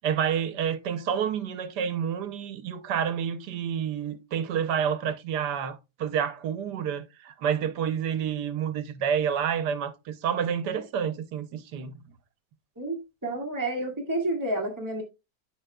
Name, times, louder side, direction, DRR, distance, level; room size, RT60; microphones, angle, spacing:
voice 1, 0.0-12.0, right 8 dB, 80° right, 1.4 m, -29 dB
voice 2, 12.8-15.0, right 1 dB, 10° right, 1.7 m, -30 dB
12.5 x 5.2 x 2.2 m
omnidirectional pair, 1.8 m